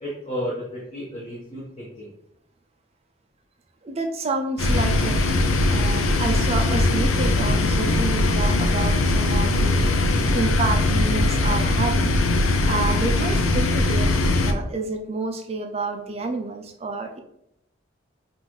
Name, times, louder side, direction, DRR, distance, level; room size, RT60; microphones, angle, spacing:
voice 1, 0.0-2.1, equal, 30° left, -5 dB, 0.9 m, -32 dB
voice 2, 3.8-5.4 5.7-12.1 12.7-17.2, right 3 dB, 30° right, 4 dB, 0.4 m, -29 dB
sound 1, 4.6-14.5, left 2 dB, 80° left, 0.5 m, -20 dB
5.3 x 2.5 x 3.1 m, 0.79 s
head